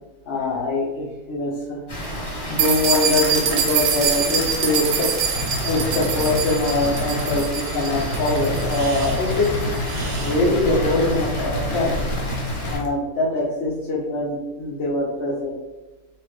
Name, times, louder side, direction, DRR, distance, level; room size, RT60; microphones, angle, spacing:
voice 1, 0.3-1.8 2.5-5.1 5.5-9.5 10.2-11.9 12.7-15.6, left 2 dB, 65° left, -5 dB, 0.7 m, -23 dB
Water, 1.9-12.8, equal, 15° left, 1.0 m, -31 dB
sound 1, 2.6-10.4, right 7 dB, 80° right, 1.2 m, -25 dB
sound 2, 5.3-7.5 7.9-12.9, left 1 dB, 85° left, 1.3 m, -29 dB
3.1 x 2.3 x 3.1 m, 1.1 s
omnidirectional pair, 1.8 m